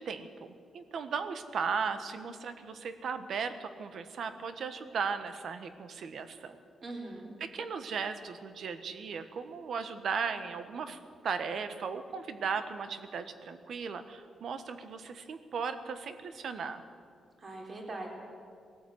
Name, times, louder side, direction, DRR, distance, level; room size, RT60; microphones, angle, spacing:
voice 1, 0.0-6.6 7.4-11.0 11.2-16.8, right 5 dB, 60° right, 10 dB, 1.4 m, -36 dB
voice 2, 6.8-7.3 17.4-18.1, right 2 dB, 35° right, 1 dB, 3.7 m, -41 dB
20.5 x 13.5 x 9.4 m, 2.3 s
wide cardioid pair, 150°, 0 cm